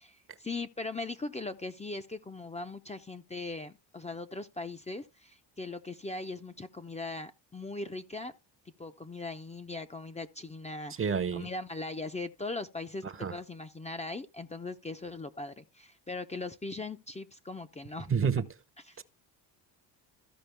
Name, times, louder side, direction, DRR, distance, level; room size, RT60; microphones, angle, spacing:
voice 1, 0.0-8.3 8.8-18.3 18.9-19.0, left 3 dB, 15° left, 0.6 m, -40 dB
voice 2, 11.0-11.5 13.0-13.3 18.1-18.5 19.0-19.1, right 6 dB, 30° right, 0.8 m, -29 dB
14.0 x 5.0 x 3.4 m
cardioid pair, 90°, 43 cm